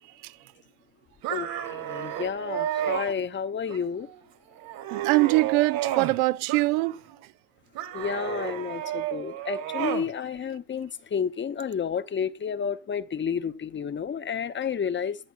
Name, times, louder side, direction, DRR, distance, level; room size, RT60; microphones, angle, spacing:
sound 1, 1.2-3.1 3.7-4.2 4.6-6.2 6.5-7.2 7.8-10.1, right 11 dB, 55° right, 2.0 m, -32 dB
voice 1, 1.3-4.1 7.9-15.2, left 7 dB, 25° left, 0.9 m, -31 dB
voice 2, 4.9-7.0, right 21 dB, 75° right, 0.6 m, -23 dB
18.5 x 11.0 x 2.5 m
hypercardioid pair, 85°, 42 cm